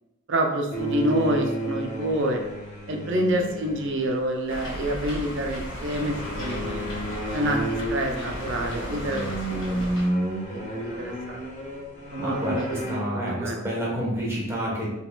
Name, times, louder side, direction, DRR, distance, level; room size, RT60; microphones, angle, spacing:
voice 1, 0.3-2.4 2.9-6.9 7.3-10.2 10.5-11.4 12.1-12.8 13.1-13.6, right 1 dB, 55° right, 3 dB, 0.6 m, -28 dB
sound 1, 0.7-4.3 5.6-13.0, right 1 dB, 30° left, 1.0 m, -31 dB
sound 2, 4.5-10.1, equal, 60° left, 1.3 m, -35 dB
voice 2, 12.2-14.9, equal, 10° right, -5 dB, 1.1 m, -29 dB
4.0 x 3.9 x 2.3 m, 0.96 s
head